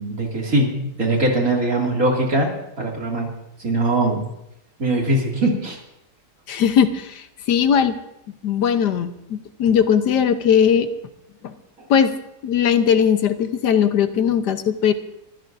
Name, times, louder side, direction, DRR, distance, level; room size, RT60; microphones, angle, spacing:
voice 1, 0.0-2.5 2.8-3.3 3.6-4.3 4.8-5.8, right 1 dB, 55° right, -1 dB, 3.1 m, -21 dB
voice 2, 6.5-8.0 8.4-10.9 11.4-11.5 11.9-12.2 12.4-14.9, left 8 dB, 85° left, 9 dB, 1.5 m, -19 dB
24.0 x 14.5 x 2.6 m, 0.84 s
omnidirectional pair, 1.7 m